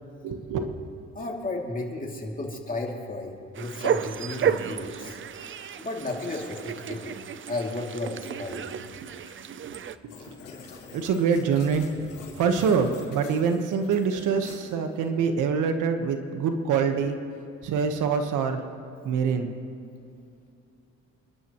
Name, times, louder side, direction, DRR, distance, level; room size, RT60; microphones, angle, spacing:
voice 1, 0.2-0.8 8.6-9.2 9.6-9.7 10.3-10.4 10.9-17.2 17.6-18.6 19.0-19.5, right 6 dB, 85° right, 6 dB, 1.3 m, -25 dB
voice 2, 1.1-5.2 5.8-7.1 7.5-8.7 9.3-9.4 10.6-10.8, left 2 dB, 25° left, -1 dB, 2.7 m, -33 dB
sound 1, 3.6-10.0, right 8 dB, 40° right, 0.6 m, -32 dB
sound 2, 10.1-15.1, left 5 dB, 90° left, 3.9 m, -46 dB
28.0 x 12.0 x 3.1 m, 2.6 s
cardioid pair, 90°, 30 cm